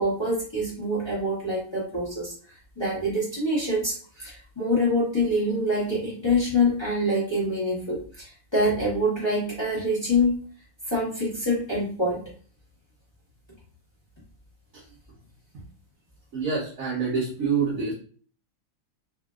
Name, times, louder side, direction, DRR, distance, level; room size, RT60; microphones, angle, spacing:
voice 1, 0.0-2.3 2.8-10.4 10.9-12.2, left 1 dB, 20° left, -7 dB, 0.8 m, -25 dB
voice 2, 16.3-17.9, right 5 dB, 50° right, -7 dB, 1.1 m, -26 dB
3.6 x 2.6 x 2.4 m, 0.43 s
omnidirectional pair, 2.4 m